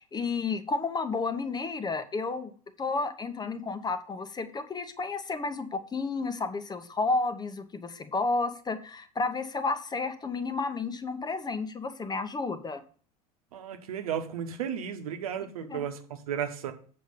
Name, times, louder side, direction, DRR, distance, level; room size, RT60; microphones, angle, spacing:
voice 1, 0.0-2.5 2.8-12.8 15.7-15.8, left 3 dB, 20° left, 10 dB, 1.0 m, -31 dB
voice 2, 13.5-16.7, right 8 dB, 70° right, 7 dB, 1.1 m, -34 dB
7.7 x 5.3 x 5.4 m, 0.43 s
figure-of-eight pair, 70°, 19 cm